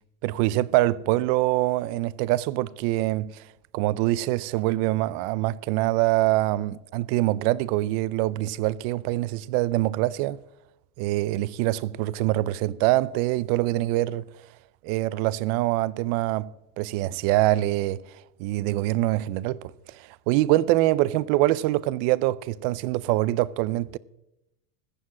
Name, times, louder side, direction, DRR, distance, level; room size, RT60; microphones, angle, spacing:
voice 1, 0.2-3.4 3.7-10.4 11.0-14.2 14.8-16.5 16.8-18.0 18.4-24.0, right 17 dB, 55° right, 0.6 m, -24 dB
14.5 x 7.4 x 7.5 m
supercardioid pair, 125°, 47 cm